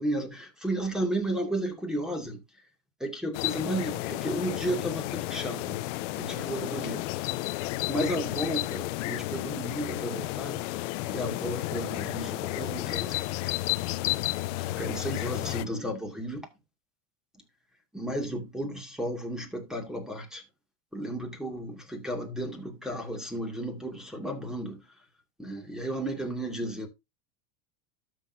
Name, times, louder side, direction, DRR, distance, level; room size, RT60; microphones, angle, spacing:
voice 1, 0.0-2.4 3.0-5.8 6.1-7.0 7.9-10.6 11.1-13.1 14.6-16.4 17.9-20.4 20.9-24.8 25.4-26.9, right 1 dB, ahead, 2.4 m, -33 dB
sound 1, 3.3-15.6, left 18 dB, 75° left, 0.7 m, -32 dB
12.5 x 6.5 x 2.8 m
supercardioid pair, 135°, 37 cm